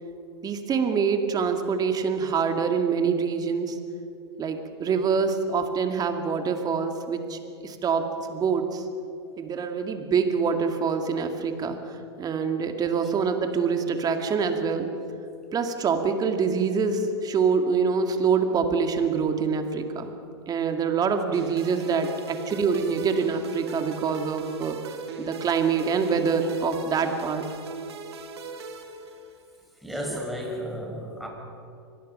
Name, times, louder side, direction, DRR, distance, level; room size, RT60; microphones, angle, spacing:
voice 1, 0.4-3.8 4.4-8.9 9.4-14.9 15.5-20.1 20.5-27.4, right 5 dB, 30° right, 6 dB, 2.4 m, -25 dB
sound 1, 21.3-29.6, right 4 dB, 75° right, 2.4 m, -40 dB
voice 2, 29.8-31.3, equal, ahead, 0 dB, 5.2 m, -33 dB
24.5 x 19.5 x 5.6 m, 2.6 s
hypercardioid pair, 100°, 14 cm